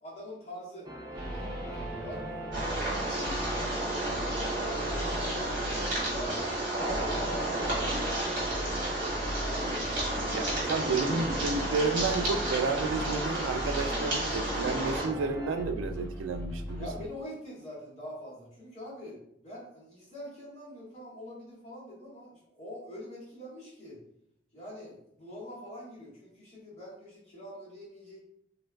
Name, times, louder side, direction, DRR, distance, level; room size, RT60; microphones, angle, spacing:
voice 1, 0.0-2.2 3.0-6.5 6.8-8.0 9.4-9.9 10.3-10.5 16.8-24.0 24.5-28.2, left 1 dB, 35° left, -8 dB, 1.5 m, -44 dB
sound 1, 0.8-15.6, right 1 dB, 20° right, 0.6 m, -42 dB
sound 2, 1.1-17.1, equal, 5° left, 0.9 m, -39 dB
sound 3, 2.5-15.0, right 1 dB, 45° right, 1.2 m, -32 dB
voice 2, 10.3-16.9, right 4 dB, 85° right, 8 dB, 0.3 m, -31 dB
3.2 x 2.9 x 2.2 m, 0.73 s
head